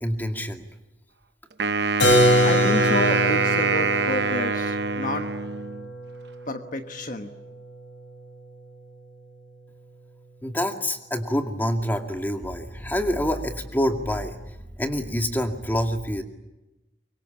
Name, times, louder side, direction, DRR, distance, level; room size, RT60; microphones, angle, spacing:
voice 1, 0.0-0.6 10.4-16.2, equal, 10° left, 4 dB, 2.3 m, -27 dB
Wind instrument woodwind instrument, 1.6-5.9, right 4 dB, 65° right, 0.9 m, -25 dB
Keyboard (musical), 2.0-7.6, equal, 90° left, 7.1 m, -24 dB
voice 2, 2.4-5.3 6.5-7.3, left 1 dB, 45° left, 6 dB, 1.3 m, -29 dB
24.5 x 24.0 x 8.8 m, 0.96 s
head